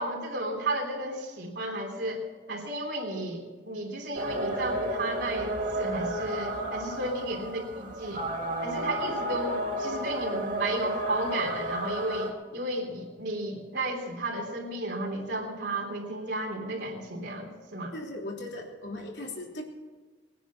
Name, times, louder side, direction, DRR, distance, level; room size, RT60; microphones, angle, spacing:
voice 1, 0.0-2.2 2.5-8.3 8.6-17.9, right 1 dB, 75° right, -3 dB, 3.3 m, -33 dB
sound 1, 4.1-12.3, right 1 dB, 45° right, 2.1 m, -32 dB
voice 2, 17.9-19.6, left 1 dB, 70° left, 0 dB, 3.1 m, -38 dB
20.5 x 10.0 x 6.0 m, 1.4 s
head